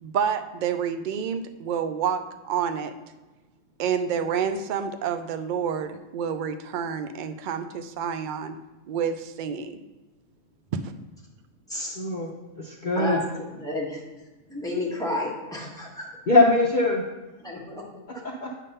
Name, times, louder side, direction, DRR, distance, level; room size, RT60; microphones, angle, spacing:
voice 1, 0.0-2.9 3.8-8.6 8.9-9.8 10.7-10.9, right 7 dB, 60° right, 9 dB, 0.5 m, -28 dB
voice 2, 11.9-12.3 12.6-13.2 16.3-17.0 18.2-18.5, left 2 dB, 45° left, -1 dB, 0.8 m, -21 dB
voice 3, 12.9-14.0 14.5-16.1 17.4-17.8, left 2 dB, 5° left, -4 dB, 1.4 m, -31 dB
8.3 x 3.6 x 5.5 m, 1.1 s
omnidirectional pair, 1.3 m